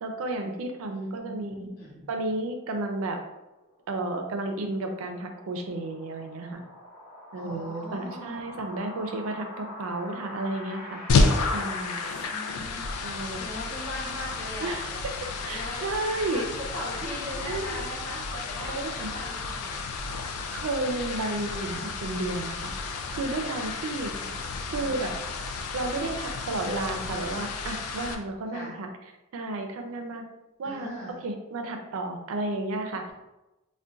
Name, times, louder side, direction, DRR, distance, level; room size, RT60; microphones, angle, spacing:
voice 1, 0.0-1.7 2.1-3.2 3.9-6.6 7.3-11.0 11.5-12.0 13.0-13.4 14.6-14.9 15.5-16.5 17.4-17.8 18.7-19.1 20.5-22.7 23.1-24.1 24.7-25.1 25.7-28.9 29.3-30.2 30.6-30.9 31.2-33.1, right 2 dB, 65° right, 4 dB, 0.4 m, -32 dB
voice 2, 0.9-2.1 7.4-8.4 12.2-12.9 13.3-15.0 15.4-15.9 16.2-18.8 19.1-19.8 24.1-25.0 28.5-28.7 30.6-31.2, equal, 45° left, -5 dB, 1.1 m, -39 dB
sound 1, 3.5-12.2, left 1 dB, 25° left, 0.7 m, -44 dB
sound 2, 11.1-28.1, left 3 dB, 80° left, 0.4 m, -31 dB
2.4 x 2.1 x 3.8 m, 0.99 s
head